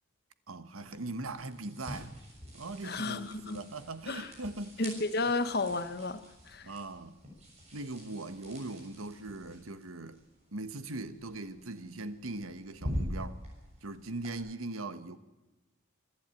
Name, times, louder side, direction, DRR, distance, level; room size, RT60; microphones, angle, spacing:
voice 1, 0.5-2.1 2.5-4.9 6.6-7.2 7.7-10.2 10.5-13.4 13.8-15.2, right 2 dB, 85° right, 1.3 m, -40 dB
sound 1, 0.8-14.3, equal, 30° right, 6.9 m, -45 dB
voice 2, 2.8-3.6 4.1-4.3 4.8-6.7, left 3 dB, 50° left, 1.1 m, -33 dB
26.0 x 11.5 x 9.1 m
head